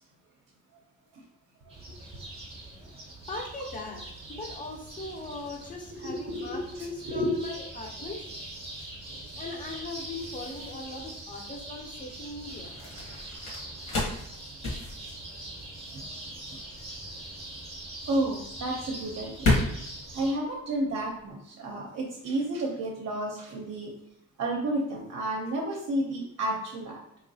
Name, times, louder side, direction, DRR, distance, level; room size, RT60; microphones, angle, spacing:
sound 1, 1.7-20.3, right 1 dB, 20° right, 0.7 m, -43 dB
voice 1, 3.3-4.0 4.3-8.3 9.3-12.7, left 2 dB, 25° left, 0 dB, 0.6 m, -39 dB
voice 2, 5.9-6.8 7.0-7.4 15.9-16.0 16.5-16.6 18.1-19.5 20.1-23.9 24.4-27.0, right 1 dB, 55° right, -1 dB, 0.6 m, -31 dB
sound 2, 7.7-21.3, left 2 dB, 55° left, 1.3 m, -34 dB
3.8 x 2.9 x 2.7 m, 0.76 s
cardioid pair, 155°, 31 cm